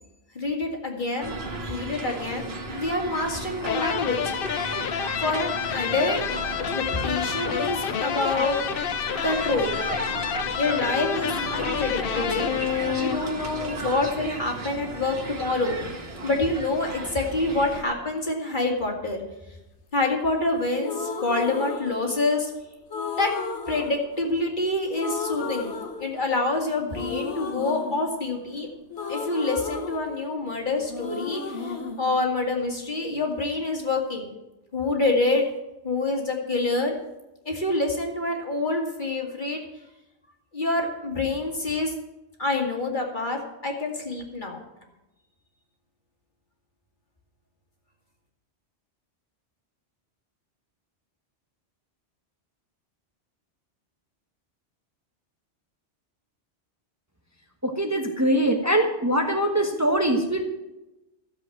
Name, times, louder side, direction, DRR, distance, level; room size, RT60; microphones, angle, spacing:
voice 1, 0.3-1.3 1.6-2.5 2.7-4.3 4.8-6.2 6.7-8.6 9.2-9.8 10.6-15.8 16.2-19.2 19.9-22.5 23.2-23.3 23.7-25.7 26.0-28.7 29.1-34.3 34.7-35.5 35.8-37.0 37.5-39.6 40.5-41.9 42.4-44.6, left 2 dB, 45° left, 1 dB, 2.5 m, -27 dB
sound 1, 1.2-17.8, right 2 dB, 60° right, 1.9 m, -35 dB
sound 2, 3.6-13.6, left 9 dB, 60° left, 0.8 m, -29 dB
sound 3, 20.8-22.5 22.9-24.7 24.9-26.5 26.9-30.6 30.9-32.9, left 4 dB, 90° left, 1.5 m, -34 dB
voice 2, 57.6-60.4, right 1 dB, 15° right, 3 dB, 1.3 m, -23 dB
13.5 x 7.5 x 7.7 m, 0.98 s
omnidirectional pair, 1.1 m